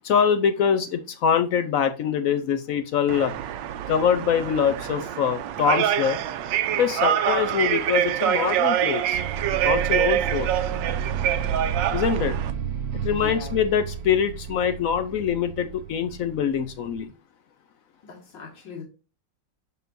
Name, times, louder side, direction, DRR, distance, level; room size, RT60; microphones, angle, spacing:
voice 1, 0.0-3.3 3.9-6.2 6.7-9.2 9.6-10.5 11.9-12.4 13.0-17.1, left 7 dB, 70° left, 9 dB, 0.8 m, -24 dB
sound 1, 3.1-12.5, right 10 dB, 90° right, 1.3 m, -25 dB
sound 2, 9.1-17.0, right 7 dB, 65° right, 1.1 m, -32 dB
voice 2, 13.1-13.6 18.0-18.8, left 5 dB, 90° left, -1 dB, 2.3 m, -38 dB
6.7 x 6.5 x 2.6 m, 0.32 s
omnidirectional pair, 1.9 m